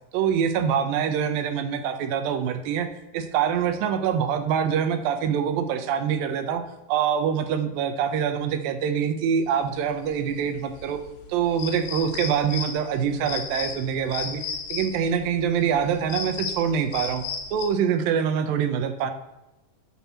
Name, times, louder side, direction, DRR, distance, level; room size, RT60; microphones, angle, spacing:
voice 1, 0.1-2.9 3.1-6.6 6.9-11.0 11.3-14.4 14.7-17.2 17.5-19.1, right 8 dB, 90° right, 8 dB, 2.6 m, -25 dB
sound 1, 9.6-17.7, left 6 dB, 80° left, 2.7 m, -35 dB
8.9 x 4.5 x 7.1 m, 0.97 s
omnidirectional pair, 4.0 m